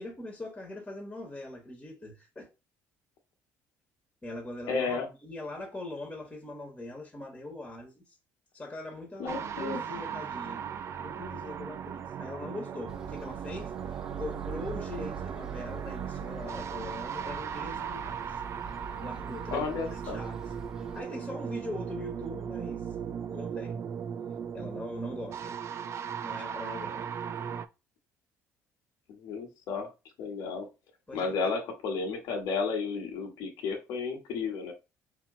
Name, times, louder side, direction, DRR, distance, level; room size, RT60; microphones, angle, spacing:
voice 1, 0.0-2.5 4.2-8.2 8.5-10.7 11.0-18.4 18.9-19.7 20.0-20.5 20.9-22.8 23.3-23.8 24.5-25.6 26.2-27.1 31.1-31.3, left 2 dB, 20° left, 1.5 m, -41 dB
voice 2, 4.7-5.1 9.2-9.8 19.5-20.2 29.1-29.9 30.2-30.7 31.1-34.7, left 4 dB, 70° left, 1.4 m, -32 dB
sound 1, 9.3-27.6, right 8 dB, 50° right, 0.6 m, -37 dB
sound 2, 12.9-21.0, right 3 dB, 10° right, 0.9 m, -47 dB
4.3 x 3.0 x 3.7 m
supercardioid pair, 90°, 6 cm